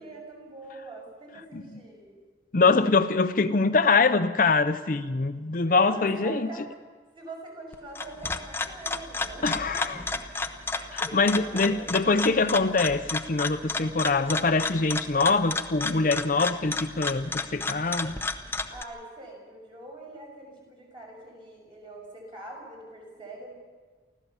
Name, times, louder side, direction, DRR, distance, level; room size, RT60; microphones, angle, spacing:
voice 1, 0.0-2.2 5.8-6.7 7.1-9.7 10.7-12.5 18.7-23.6, right 2 dB, 30° right, -1 dB, 6.5 m, -44 dB
voice 2, 2.5-6.5 9.4-10.0 11.1-18.1, left 3 dB, 50° left, 9 dB, 0.7 m, -24 dB
sound 1, 7.7-18.8, left 3 dB, 15° left, 0.8 m, -32 dB
24.5 x 15.5 x 7.1 m, 1.4 s
head